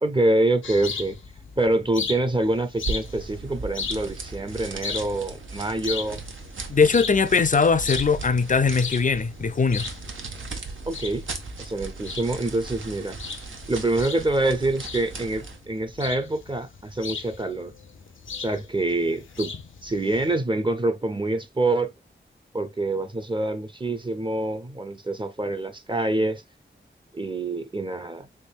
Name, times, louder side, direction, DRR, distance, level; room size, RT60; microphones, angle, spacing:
voice 1, 0.0-1.2 1.6-6.2 10.9-11.3 11.6-13.2 13.7-17.7 18.4-19.5 19.8-21.9 22.5-26.4 27.1-28.3, right 2 dB, 25° right, 0.6 m, -26 dB
sound 1, 0.6-20.4, left 5 dB, 85° left, 0.6 m, -37 dB
sound 2, 2.8-15.7, right 4 dB, 85° right, 0.8 m, -37 dB
voice 2, 6.7-9.9, left 5 dB, 40° left, 0.5 m, -20 dB
3.6 x 3.4 x 2.4 m
wide cardioid pair, 70°, 20 cm